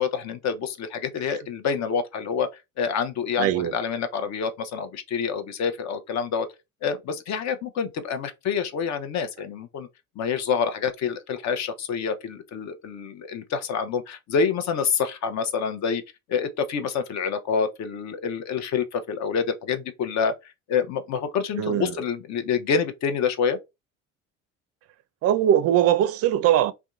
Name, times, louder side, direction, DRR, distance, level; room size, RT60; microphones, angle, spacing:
voice 1, 0.0-2.5 2.8-6.5 6.8-9.9 10.2-16.0 16.3-20.3 20.7-23.6, left 6 dB, 45° left, 0.7 m, -27 dB
voice 2, 3.4-3.8 21.6-22.0 25.2-26.7, right 11 dB, 40° right, 0.4 m, -21 dB
2.7 x 2.2 x 2.4 m
hypercardioid pair, 65°, 38 cm